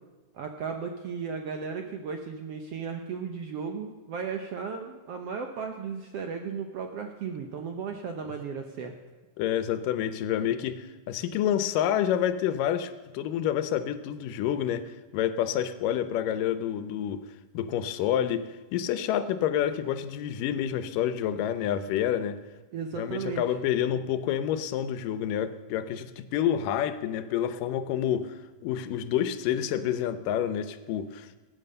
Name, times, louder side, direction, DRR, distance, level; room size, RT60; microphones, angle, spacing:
voice 1, 0.3-9.0 22.7-23.4, right 6 dB, 70° right, 4 dB, 1.5 m, -35 dB
voice 2, 9.4-17.2 17.5-22.4 22.9-28.4 28.6-31.3, left 10 dB, 90° left, 12 dB, 2.4 m, -28 dB
17.5 x 9.0 x 6.7 m, 1.2 s
omnidirectional pair, 3.7 m